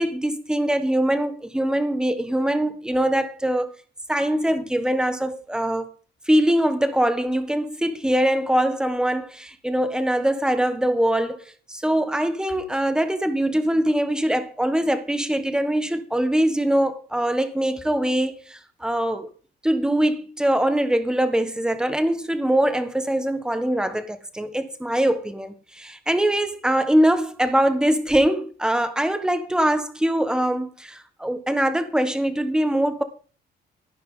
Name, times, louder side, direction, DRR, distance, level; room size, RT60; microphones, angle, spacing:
voice 1, 0.0-3.7 4.1-5.9 6.3-11.4 11.7-19.3 19.6-33.0, right 1 dB, 5° right, 1.5 m, -22 dB
13.5 x 11.5 x 3.9 m
cardioid pair, 165°, 18 cm